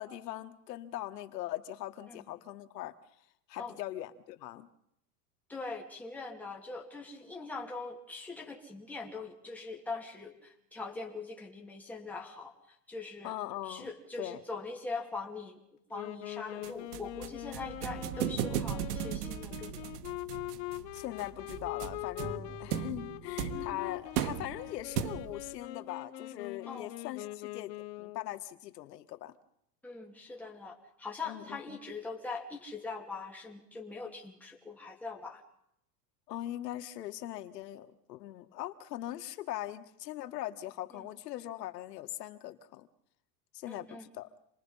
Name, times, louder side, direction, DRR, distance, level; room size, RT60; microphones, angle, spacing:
voice 1, 0.0-2.9 3.5-4.7 13.2-13.9 14.2-14.4 20.9-27.7 28.0-29.3 31.2-31.8 36.3-42.9 43.5-44.3, left 14 dB, 90° left, 9 dB, 1.7 m, -41 dB
voice 2, 5.5-13.3 13.6-15.6 15.9-19.9 23.5-23.8 26.7-26.9 29.8-35.4 40.9-41.1 43.7-44.0, left 3 dB, 5° left, -1 dB, 2.6 m, -42 dB
Wind instrument woodwind instrument, 15.9-28.4, left 18 dB, 45° left, 1.2 m, -42 dB
sound 1, 16.6-25.5, right 10 dB, 75° right, 1.4 m, -37 dB
28.0 x 20.5 x 5.6 m, 0.76 s
supercardioid pair, 170°, 47 cm